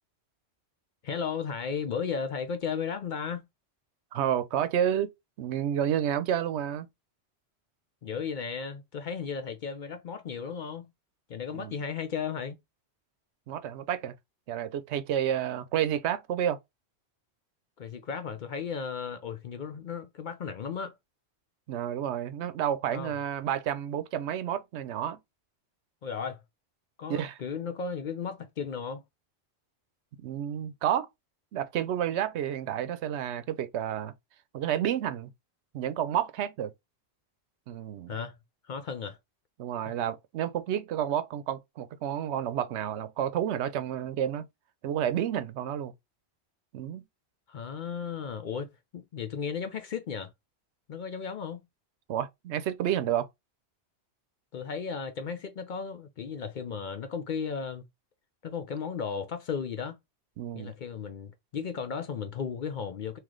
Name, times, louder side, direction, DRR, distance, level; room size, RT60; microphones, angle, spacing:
voice 1, 1.0-3.4 8.0-10.8 11.3-12.6 17.8-20.9 22.9-23.1 26.0-26.4 27.0-29.0 38.1-38.4 38.7-39.2 47.5-50.3 50.9-51.6 54.5-57.9 58.4-60.0 60.5-63.2, left 6 dB, 55° left, 0.6 m, -35 dB
voice 2, 4.1-5.1 5.4-6.9 11.5-11.8 13.5-14.1 14.5-16.6 21.7-25.2 27.1-27.4 30.2-31.1 31.5-34.1 34.5-35.3 35.7-36.7 37.7-38.1 39.6-44.5 44.8-45.9 46.7-47.0 52.1-53.3 60.4-60.7, right 10 dB, 85° right, 0.9 m, -30 dB
3.1 x 3.0 x 3.7 m
omnidirectional pair, 1.1 m